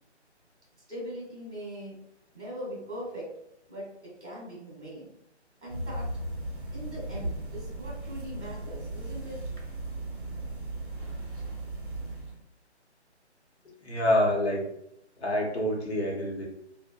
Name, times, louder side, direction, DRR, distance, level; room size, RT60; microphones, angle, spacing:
voice 1, 0.9-2.0 2.3-3.3 3.7-5.2 5.6-6.1 6.7-9.4, equal, ahead, -19 dB, 0.6 m, -40 dB
sound 1, 5.7-12.4, right 2 dB, 45° right, 0.7 m, -36 dB
voice 2, 13.8-14.6 15.2-16.5, left 1 dB, 65° left, -2 dB, 0.9 m, -26 dB
2.6 x 2.1 x 2.2 m, 0.77 s
figure-of-eight pair, 155°, 35 cm